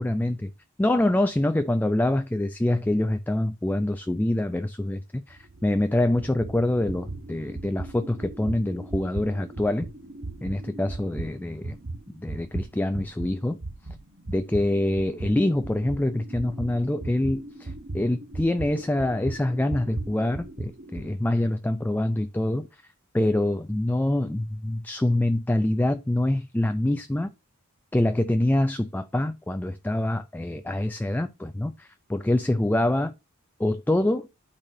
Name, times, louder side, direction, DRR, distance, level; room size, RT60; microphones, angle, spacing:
voice 1, 0.0-0.4 0.8-9.9 10.4-11.8 12.1-13.6 14.3-22.8 23.1-27.3 27.9-33.1 33.6-34.3, left 1 dB, 10° left, 0.3 m, -25 dB
sound 1, 5.3-13.3 13.6-21.1, right 2 dB, 55° right, 1.3 m, -37 dB
12.0 x 4.1 x 2.7 m
head